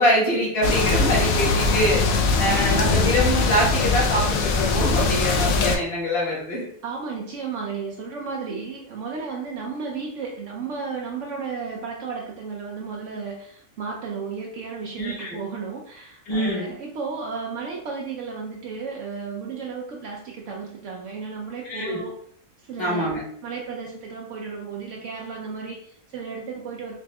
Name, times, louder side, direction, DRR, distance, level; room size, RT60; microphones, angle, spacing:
voice 1, 0.0-2.0 2.4-6.6 15.0-15.4 16.3-16.6 21.7-22.0 22.8-23.2, equal, 45° left, -5 dB, 1.5 m, -24 dB
sound 1, 0.6-5.8, left 4 dB, 80° left, 1.0 m, -21 dB
voice 2, 2.5-3.0 6.8-22.2 22.7-23.1 23.4-26.9, right 5 dB, 70° right, -1 dB, 0.9 m, -33 dB
5.2 x 2.5 x 2.2 m, 0.65 s
omnidirectional pair, 1.4 m